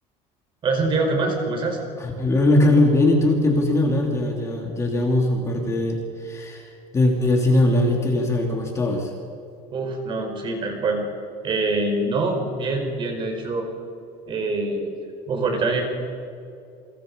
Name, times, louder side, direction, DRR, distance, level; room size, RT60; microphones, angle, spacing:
voice 1, 0.6-1.8 9.7-11.0 11.4-13.7 14.3-14.9 15.3-15.8, right 3 dB, 30° right, 3 dB, 4.8 m, -24 dB
voice 2, 2.0-9.1, left 2 dB, 15° left, 1 dB, 2.9 m, -20 dB
29.5 x 24.5 x 5.4 m, 2.5 s
cardioid pair, 175°, 17 cm